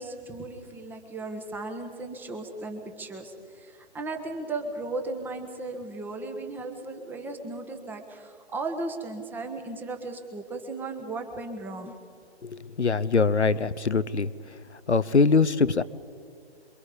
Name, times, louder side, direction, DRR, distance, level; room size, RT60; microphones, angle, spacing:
voice 1, 0.0-11.9, right 2 dB, 5° right, 5 dB, 1.3 m, -36 dB
voice 2, 12.4-14.3 14.9-15.8, left 4 dB, 85° left, 17 dB, 0.9 m, -23 dB
27.0 x 23.0 x 5.1 m, 2.3 s
figure-of-eight pair, 140°, 33 cm